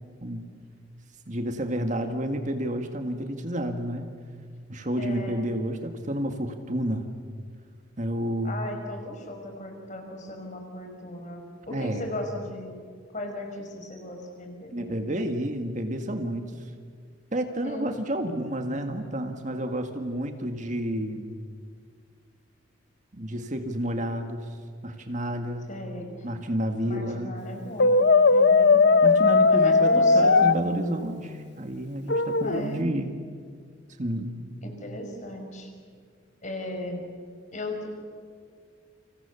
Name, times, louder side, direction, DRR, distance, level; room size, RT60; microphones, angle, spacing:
voice 1, 1.3-4.1 4.7-7.1 8.0-8.6 11.7-12.0 14.7-16.4 17.3-21.3 23.1-24.6 24.8-25.7 26.2-27.4 29.0-33.1 34.0-34.4, right 1 dB, 40° right, 6 dB, 2.0 m, -30 dB
voice 2, 5.0-5.5 8.4-12.7 13.1-15.0 17.6-17.9 25.7-26.1 26.8-28.0 28.3-28.8 29.5-31.0 32.4-32.9 34.6-35.7 36.4-37.1 37.5-38.0, left 1 dB, 40° left, 3 dB, 5.8 m, -37 dB
Brass instrument, 27.8-30.6 32.1-32.7, left 4 dB, 60° left, 0.8 m, -18 dB
30.0 x 26.5 x 7.1 m, 2.1 s
head